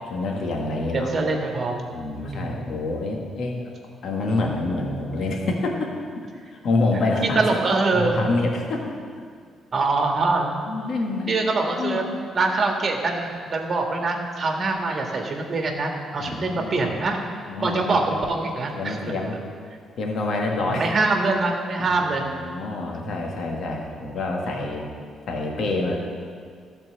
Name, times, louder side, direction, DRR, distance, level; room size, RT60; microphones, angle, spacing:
voice 1, 0.1-1.1 1.9-3.6 4.0-7.5 7.9-8.9 10.7-11.4 11.8-12.2 16.2-16.9 17.5-18.0 18.7-19.4 20.0-20.9 21.9-24.9 25.3-26.0, left 2 dB, 65° left, 0 dB, 1.7 m, -27 dB
voice 2, 0.9-1.8 2.2-2.6 7.4-8.2 9.7-10.5 11.3-12.1 12.3-17.3 17.6-19.1 20.7-22.3, right 3 dB, 40° right, 2 dB, 1.7 m, -24 dB
13.0 x 4.5 x 7.6 m, 2.1 s
cardioid pair, 90°, 0 cm